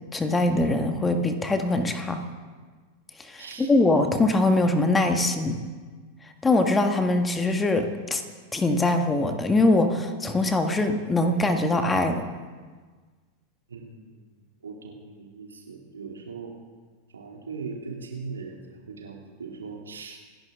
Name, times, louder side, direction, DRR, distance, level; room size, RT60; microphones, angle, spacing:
voice 1, 0.1-2.2 3.2-5.6 6.4-8.2 8.5-12.2, left 2 dB, 15° left, 6 dB, 1.7 m, -23 dB
voice 2, 3.4-3.7 13.7-16.6 17.1-20.2, right 4 dB, 70° right, 0 dB, 2.9 m, -40 dB
27.0 x 11.0 x 3.7 m, 1.4 s
figure-of-eight pair, 90°, 0 cm